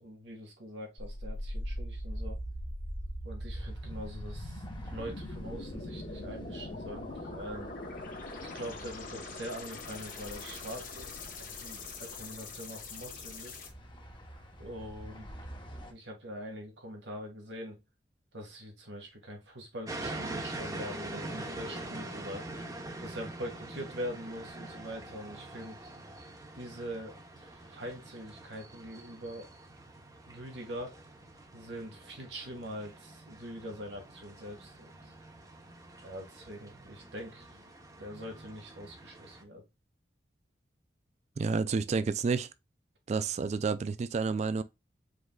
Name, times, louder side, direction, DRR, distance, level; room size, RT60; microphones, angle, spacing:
voice 1, 0.0-2.4 3.2-7.7 8.4-13.6 14.6-15.3 15.9-17.8 18.3-22.4 23.0-25.9 26.5-29.5 30.3-31.0 31.5-35.0 36.0-37.5 38.0-39.6, equal, 85° right, 1.8 m, -43 dB
sound 1, 1.0-13.7, left 1 dB, 50° left, 1.1 m, -41 dB
sound 2, 3.6-15.9, equal, 25° left, 1.0 m, -52 dB
sound 3, 19.9-39.4, right 2 dB, 20° right, 0.8 m, -44 dB
voice 2, 41.4-42.5 43.1-44.6, right 4 dB, 40° right, 0.3 m, -30 dB
5.0 x 3.8 x 2.3 m
head